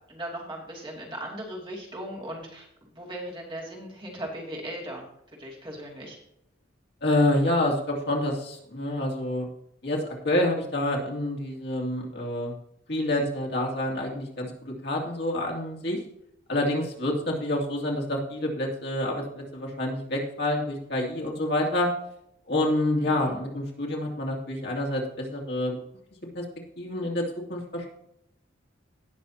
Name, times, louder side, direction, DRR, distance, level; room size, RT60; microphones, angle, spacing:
voice 1, 0.1-5.1 5.4-6.2 23.0-23.3, right 1 dB, 25° right, -3 dB, 2.7 m, -38 dB
voice 2, 7.0-9.4 9.8-12.5 12.9-16.0 16.5-21.9 22.5-25.8 26.3-26.4 26.8-27.2 27.5-27.9, left 1 dB, 55° left, -1 dB, 2.4 m, -27 dB
18.0 x 6.5 x 2.9 m, 0.78 s
head